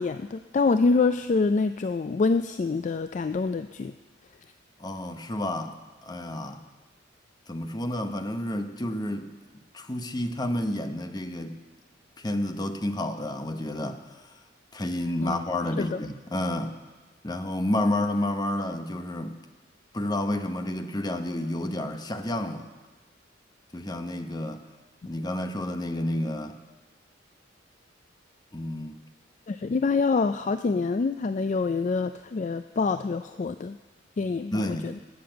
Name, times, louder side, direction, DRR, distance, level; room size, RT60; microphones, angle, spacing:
voice 1, 0.0-3.9 15.2-15.4 15.8-16.0 29.5-33.8 34.2-34.9, left 4 dB, 40° left, 10 dB, 0.3 m, -26 dB
voice 2, 4.8-6.6 7.5-11.6 12.2-14.0 14.7-16.8 17.2-19.4 19.9-22.7 23.7-24.7 25.1-26.6 28.5-29.0 34.5-35.0, left 1 dB, 20° left, 7 dB, 0.8 m, -30 dB
19.0 x 6.9 x 7.8 m, 1.3 s
head